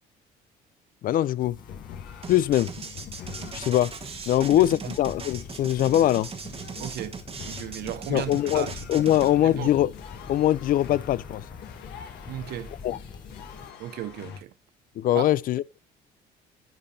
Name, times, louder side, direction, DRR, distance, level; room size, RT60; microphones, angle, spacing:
voice 1, 1.0-1.6 2.3-2.7 3.5-3.9 4.3-6.3 8.1-9.9 10.3-11.4 12.8-13.0 15.0-15.8, left 13 dB, 55° left, 0.4 m, -22 dB
sound 1, 1.4-13.7, left 4 dB, 25° left, 1.0 m, -45 dB
sound 2, 1.6-14.4, left 9 dB, 80° left, 1.6 m, -45 dB
sound 3, 2.2-9.3, right 5 dB, 35° right, 1.2 m, -39 dB
voice 2, 6.8-9.7 12.3-12.7 13.8-14.5 15.1-15.3, right 12 dB, 70° right, 0.8 m, -36 dB
10.5 x 8.7 x 2.7 m
cardioid pair, 110°, 17 cm